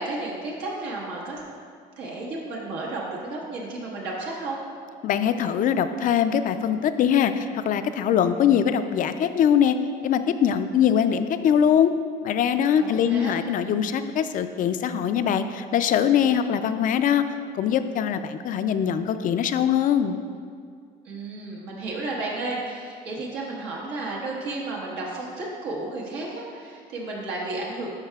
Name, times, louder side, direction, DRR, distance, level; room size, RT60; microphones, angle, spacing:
voice 1, 0.0-1.4 2.0-4.6 12.8-13.4 21.0-27.9, right 2 dB, 85° right, -4 dB, 1.3 m, -32 dB
voice 2, 5.0-9.8 10.0-11.9 12.2-17.2 17.5-20.2, left 8 dB, 50° left, 10 dB, 0.4 m, -22 dB
12.0 x 4.8 x 2.3 m, 2.1 s
cardioid pair, 110°, 17 cm